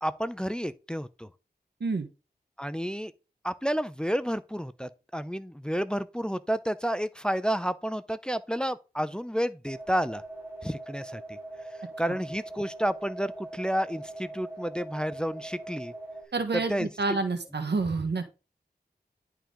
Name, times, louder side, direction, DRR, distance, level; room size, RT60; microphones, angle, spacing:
voice 1, 0.0-1.3 2.6-3.1 3.4-10.2 10.6-11.4 12.0-15.9 16.5-17.2, equal, 5° left, 0.5 m, -30 dB
sound 1, 9.7-16.2, right 2 dB, 15° right, 3.9 m, -42 dB
voice 2, 16.3-18.3, right 3 dB, 85° right, 1.4 m, -28 dB
11.0 x 4.5 x 3.8 m
wide cardioid pair, 70°, 17 cm